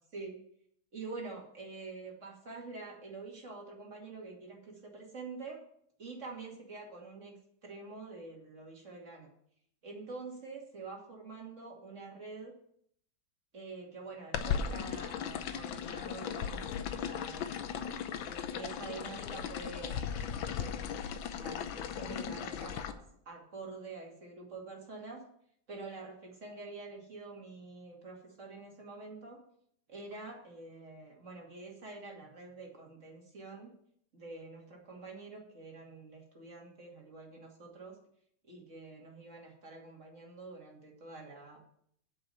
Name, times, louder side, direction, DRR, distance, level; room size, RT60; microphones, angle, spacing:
voice 1, 0.9-5.6 6.0-7.3 7.6-9.3 9.8-12.5 13.5-17.5 18.2-20.9 21.3-23.0 23.3-25.2 25.7-29.4 29.9-33.7 34.1-37.9 38.4-41.6, right 3 dB, 40° right, -1 dB, 2.6 m, -46 dB
sound 1, 14.3-22.9, left 8 dB, 80° left, 1.5 m, -37 dB
8.7 x 6.1 x 7.8 m, 0.68 s
omnidirectional pair, 2.1 m